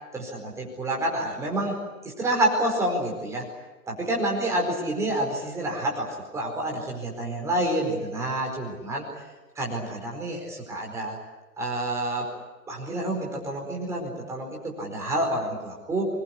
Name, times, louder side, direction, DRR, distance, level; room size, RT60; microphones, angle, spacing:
voice 1, 0.1-1.8 2.0-3.4 4.1-9.0 9.6-11.2 11.6-12.3 12.7-16.1, right 1 dB, 5° right, -1 dB, 4.6 m, -28 dB
25.5 x 21.0 x 9.7 m, 1.2 s
figure-of-eight pair, 140°, 46 cm